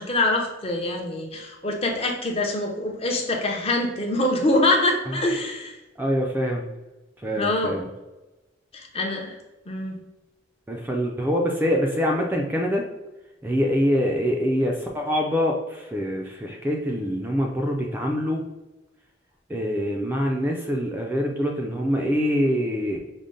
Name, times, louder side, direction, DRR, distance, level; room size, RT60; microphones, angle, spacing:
voice 1, 0.0-5.8 7.3-7.8 8.7-9.3 9.7-10.0, left 2 dB, 30° left, 2 dB, 0.6 m, -24 dB
voice 2, 6.0-6.6 7.2-7.9 10.7-12.9 13.4-18.4 19.5-23.0, equal, 10° right, 0 dB, 0.4 m, -24 dB
5.1 x 2.1 x 3.7 m, 1.1 s
head